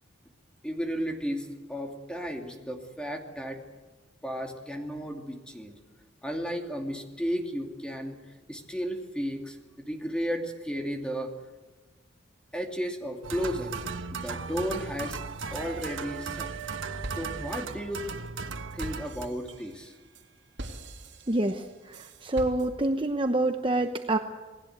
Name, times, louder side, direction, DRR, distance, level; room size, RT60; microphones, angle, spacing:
voice 1, 0.6-3.6 4.2-5.8 6.2-8.2 8.5-11.3 12.5-13.7 14.1-15.2 15.5-16.5 17.2-18.0 18.7-19.9, equal, 5° left, 3 dB, 2.7 m, -34 dB
sound 1, 13.2-19.3, right 5 dB, 80° right, 1.3 m, -36 dB
sound 2, 16.1-16.7 17.0-23.1, right 1 dB, 65° right, 3.1 m, -43 dB
voice 2, 21.3-24.2, right 2 dB, 25° right, 6 dB, 1.0 m, -27 dB
28.0 x 19.0 x 8.1 m, 1.3 s
head